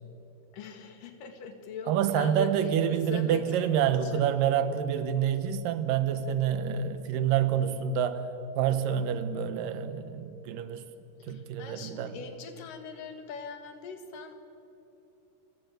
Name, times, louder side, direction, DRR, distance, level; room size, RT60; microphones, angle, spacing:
voice 1, 0.5-4.2 11.3-14.3, left 4 dB, 75° left, 7 dB, 3.3 m, -41 dB
voice 2, 1.9-8.2 8.6-10.8 11.3-12.2, right 9 dB, 85° right, 11 dB, 2.8 m, -27 dB
28.5 x 13.0 x 9.2 m, 3.0 s
omnidirectional pair, 3.8 m